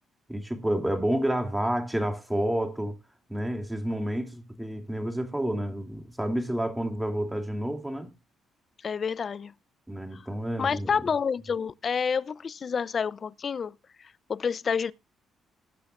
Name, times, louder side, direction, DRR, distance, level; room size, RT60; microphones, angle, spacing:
voice 1, 0.3-3.0 3.3-8.1 9.9-10.9, right 1 dB, 10° right, 2.8 m, -29 dB
voice 2, 8.8-9.5 10.1-10.2 10.6-14.9, left 6 dB, 45° left, 0.6 m, -29 dB
20.0 x 8.1 x 2.5 m
cardioid pair, 90°, 0 cm